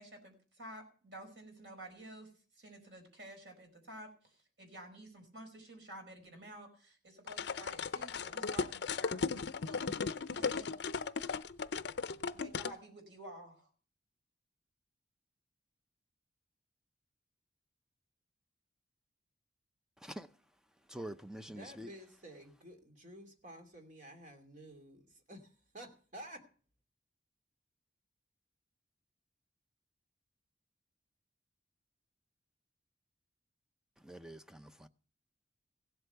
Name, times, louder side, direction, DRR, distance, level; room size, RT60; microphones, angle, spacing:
voice 1, 0.0-10.8 12.3-13.7, right 1 dB, 75° right, 5.0 m, -52 dB
sound 1, 7.3-12.7, left 5 dB, 65° left, 0.6 m, -36 dB
voice 2, 20.9-21.9 34.0-34.9, right 1 dB, 5° right, 0.6 m, -46 dB
voice 3, 21.4-26.4, right 1 dB, 45° right, 2.6 m, -52 dB
16.0 x 8.1 x 6.8 m
head